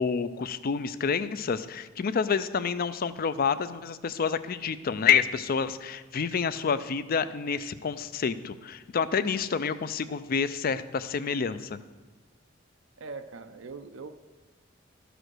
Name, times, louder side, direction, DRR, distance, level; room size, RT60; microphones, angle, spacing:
voice 1, 0.0-11.8, left 6 dB, 45° left, 14 dB, 0.4 m, -28 dB
voice 2, 13.0-14.1, right 4 dB, 70° right, 7 dB, 0.5 m, -41 dB
12.5 x 5.1 x 6.2 m, 1.2 s
head